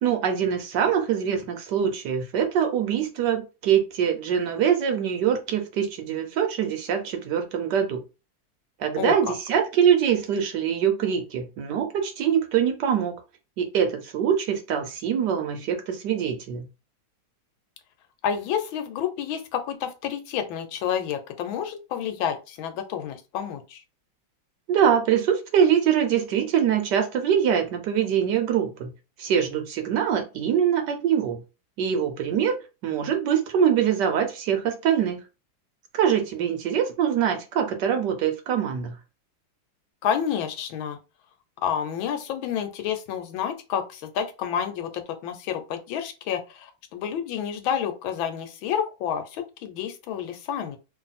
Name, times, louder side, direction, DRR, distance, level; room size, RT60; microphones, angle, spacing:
voice 1, 0.0-8.0 8.8-13.1 13.6-16.7 24.7-28.9 29.2-31.4 31.8-32.5 32.8-35.2 35.9-38.9, right 8 dB, 70° right, 5 dB, 1.2 m, -23 dB
voice 2, 9.0-9.3 18.2-23.8 40.0-41.0 41.6-50.8, left 8 dB, 85° left, 8 dB, 1.5 m, -29 dB
3.1 x 2.6 x 4.0 m, 0.30 s
omnidirectional pair, 2.1 m